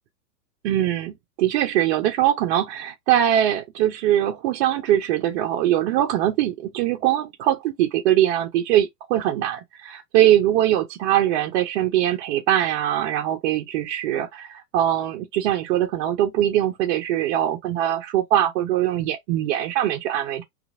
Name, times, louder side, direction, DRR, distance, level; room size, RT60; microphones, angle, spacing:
voice 1, 0.6-20.4, right 12 dB, 45° right, 0.7 m, -22 dB
3.0 x 2.4 x 2.5 m
hypercardioid pair, 125°, 49 cm